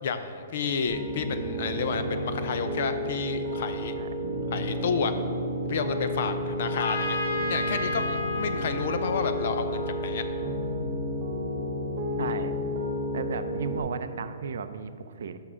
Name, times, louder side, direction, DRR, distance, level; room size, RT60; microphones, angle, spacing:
voice 1, 0.0-4.0 4.5-5.1 5.7-7.2 7.5-10.2 12.2-12.5, left 5 dB, 45° left, 9 dB, 0.5 m, -31 dB
Piano, 0.9-13.8, equal, 35° right, 0.8 m, -31 dB
Trumpet, 6.7-10.5, left 3 dB, 65° left, 0.9 m, -33 dB
voice 2, 12.2-12.5 13.1-15.4, right 6 dB, 65° right, 11 dB, 0.4 m, -35 dB
7.2 x 5.9 x 4.9 m, 2.5 s
hypercardioid pair, 175°, 0 cm